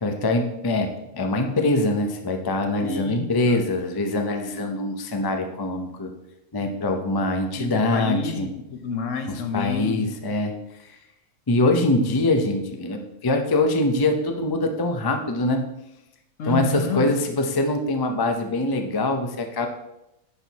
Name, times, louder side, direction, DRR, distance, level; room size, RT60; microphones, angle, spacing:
voice 1, 0.0-6.1 6.5-8.5 9.5-10.5 11.5-15.7 16.4-19.7, left 2 dB, 35° left, 4 dB, 0.3 m, -23 dB
voice 2, 2.8-3.7 7.5-10.1 16.4-17.1, left 4 dB, 60° left, 6 dB, 1.1 m, -29 dB
10.5 x 4.6 x 4.1 m, 0.89 s
omnidirectional pair, 1.6 m